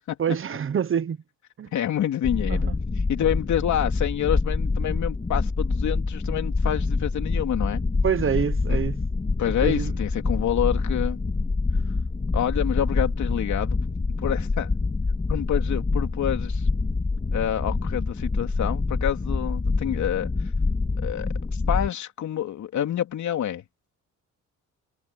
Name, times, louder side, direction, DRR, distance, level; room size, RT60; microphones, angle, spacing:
voice 1, 0.2-1.2 1.6-1.7 2.5-2.7 8.0-9.0 9.4-9.9 12.3-12.4, right 7 dB, 45° right, 1.2 m, -26 dB
voice 2, 1.7-2.7 3.1-7.8 8.7-8.8 9.4-11.2 12.3-13.8 14.2-14.7 15.3-16.7 17.3-20.3 21.0-21.3 21.7-23.6, left 10 dB, 70° left, 3.1 m, -27 dB
sound 1, 2.2-21.9, left 3 dB, 25° left, 2.4 m, -26 dB
cardioid pair, 90°, 30 cm